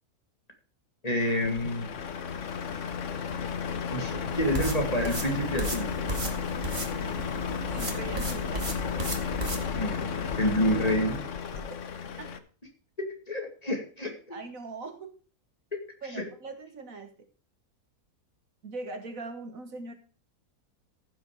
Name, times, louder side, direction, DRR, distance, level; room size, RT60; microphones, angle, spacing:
voice 1, 1.0-1.9 3.9-5.9 9.7-10.1 10.4-11.2 13.3-14.1 16.1-16.2, equal, 25° left, 2 dB, 2.2 m, -28 dB
Truck, 1.2-12.4, left 6 dB, 55° left, 1.2 m, -33 dB
sound 1, 4.3-9.6, right 2 dB, 30° right, 2.2 m, -35 dB
voice 2, 7.7-8.8 12.2-12.3 14.3-15.1 16.0-17.1 18.6-19.9, right 3 dB, 60° right, 7 dB, 1.8 m, -40 dB
15.0 x 6.2 x 4.7 m, 0.40 s
omnidirectional pair, 1.6 m